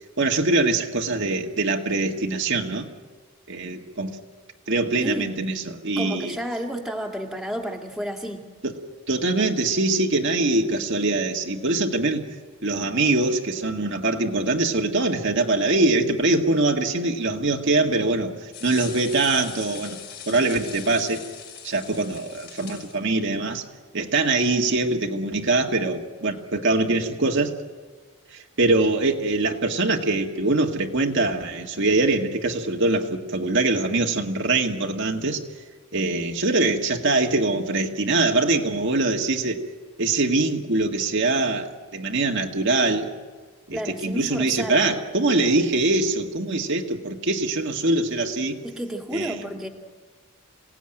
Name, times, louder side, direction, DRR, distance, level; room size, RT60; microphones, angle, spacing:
voice 1, 0.2-2.9 3.5-4.2 4.7-6.4 8.6-8.7 9.1-12.3 12.6-20.0 20.3-21.2 21.6-23.6 23.9-27.5 28.3-35.4 35.9-39.6 40.0-43.1 43.7-48.6 49.1-49.5, right 2 dB, 55° right, 2 dB, 1.8 m, -23 dB
voice 2, 5.0-5.4 6.0-8.4 43.7-45.1 48.6-49.7, equal, ahead, 0 dB, 2.2 m, -31 dB
sound 1, 18.5-23.0, left 8 dB, 50° left, 4.9 m, -41 dB
27.0 x 17.5 x 9.0 m, 1.5 s
head